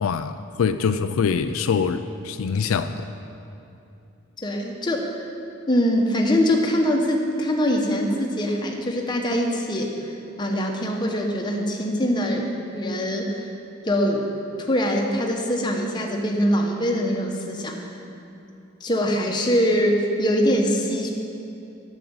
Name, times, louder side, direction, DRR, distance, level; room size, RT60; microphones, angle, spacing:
voice 1, 0.0-3.0, left 6 dB, 75° left, 9 dB, 0.4 m, -24 dB
voice 2, 4.4-5.2 5.7-9.9 10.4-12.5 12.7-13.5 13.8-14.3 14.6-17.8 18.8-21.1, equal, 20° left, 1 dB, 1.0 m, -23 dB
9.3 x 6.4 x 8.7 m, 2.7 s
head